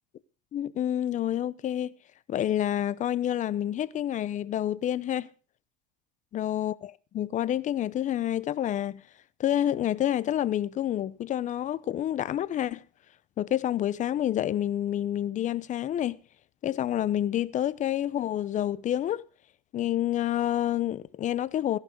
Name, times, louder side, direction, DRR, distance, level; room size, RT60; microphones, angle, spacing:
voice 1, 0.5-1.9 2.3-5.3 6.3-9.0 9.4-12.8 13.4-16.2 16.6-19.3 19.7-21.8, left 11 dB, 40° left, 0.8 m, -28 dB
16.5 x 11.5 x 3.9 m
supercardioid pair, 105°, 20 cm